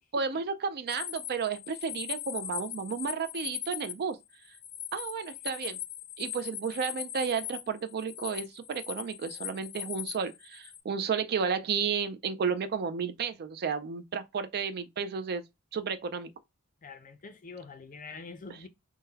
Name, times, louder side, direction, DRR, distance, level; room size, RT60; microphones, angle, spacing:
voice 1, 0.1-4.2 4.9-5.8 6.2-15.4 15.7-16.3, right 6 dB, 45° right, 0.4 m, -32 dB
sound 1, 0.9-10.8, left 11 dB, 85° left, 0.6 m, -40 dB
voice 2, 16.8-18.7, left 4 dB, 35° left, 0.5 m, -45 dB
3.7 x 2.1 x 2.7 m
head